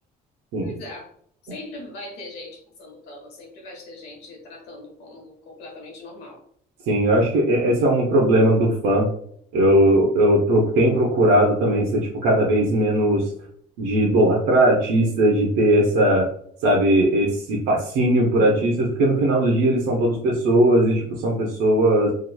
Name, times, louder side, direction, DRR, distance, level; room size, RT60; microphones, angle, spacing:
voice 1, 0.6-1.1 1.4-6.4, left 2 dB, 80° left, 0 dB, 1.1 m, -40 dB
voice 2, 6.9-9.1 9.5-13.2 13.8-16.3 16.6-22.1, right 1 dB, 90° right, -3 dB, 0.7 m, -19 dB
2.9 x 2.3 x 2.2 m, 0.63 s
cardioid pair, 110°, 17 cm